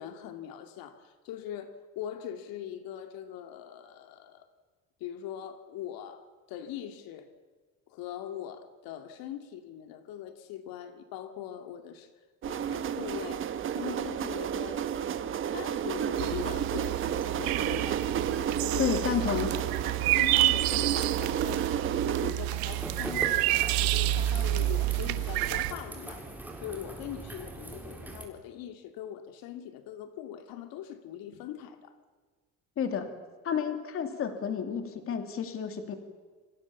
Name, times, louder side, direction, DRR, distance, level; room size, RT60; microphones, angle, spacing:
voice 1, 0.0-4.5 5.0-7.3 7.9-12.1 12.5-13.4 13.7-15.0 15.5-18.1 18.6-19.0 20.1-26.3 26.6-31.9, left 10 dB, 75° left, 8 dB, 2.4 m, -41 dB
sound 1, 12.4-22.3, right 9 dB, 35° right, 1.4 m, -32 dB
sound 2, 16.2-25.7, right 16 dB, 75° right, 1.5 m, -29 dB
voice 2, 18.8-19.5 32.8-33.1 33.4-36.0, left 7 dB, 40° left, 7 dB, 3.1 m, -30 dB
sound 3, 22.7-28.3, right 2 dB, 5° right, 3.8 m, -41 dB
29.0 x 25.5 x 7.3 m, 1.5 s
cardioid pair, 175°, 35 cm